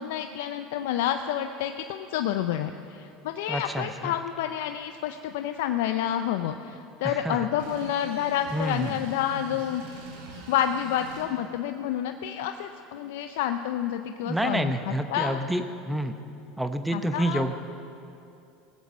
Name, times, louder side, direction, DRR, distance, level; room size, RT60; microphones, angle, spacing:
voice 1, 0.0-10.1 10.5-15.4 16.9-17.6, left 10 dB, 75° left, 7 dB, 0.5 m, -29 dB
voice 2, 3.5-4.1 7.0-7.4 8.5-9.0 14.3-16.2 16.6-17.6, right 1 dB, 5° right, 8 dB, 0.8 m, -28 dB
sound 1, 7.6-11.3, right 2 dB, 80° right, 3.1 m, -44 dB
19.5 x 8.3 x 6.3 m, 2.7 s
supercardioid pair, 105°, 0 cm